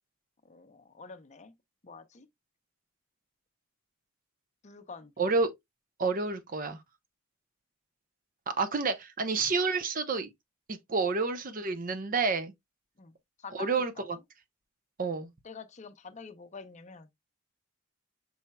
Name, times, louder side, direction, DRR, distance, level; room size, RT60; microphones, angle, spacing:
voice 1, 0.4-1.5 1.8-2.3 4.6-5.1 13.0-14.1 15.4-17.1, left 4 dB, 35° left, 0.6 m, -47 dB
voice 2, 5.2-5.5 6.0-6.8 8.5-10.3 10.7-12.5 13.5-14.2 15.0-15.3, right 4 dB, 40° right, 0.7 m, -29 dB
5.5 x 4.3 x 2.2 m
head